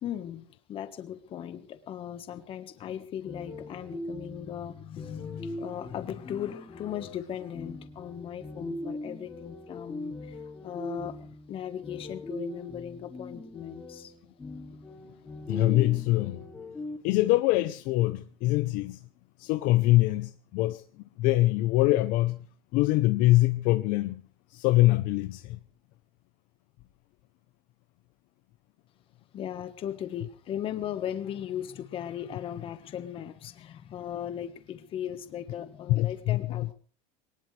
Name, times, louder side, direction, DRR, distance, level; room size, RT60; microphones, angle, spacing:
voice 1, 0.0-11.2 11.5-14.1 29.3-36.7, left 10 dB, 30° left, 1.5 m, -37 dB
sound 1, 3.2-17.0, left 1 dB, 10° left, 2.5 m, -41 dB
voice 2, 15.5-16.4 17.0-19.0 19.4-20.8 21.2-22.4 22.7-24.2 24.5-25.6 35.9-36.4, left 17 dB, 55° left, 0.8 m, -24 dB
22.5 x 19.0 x 3.4 m
cardioid pair, 165°, 17 cm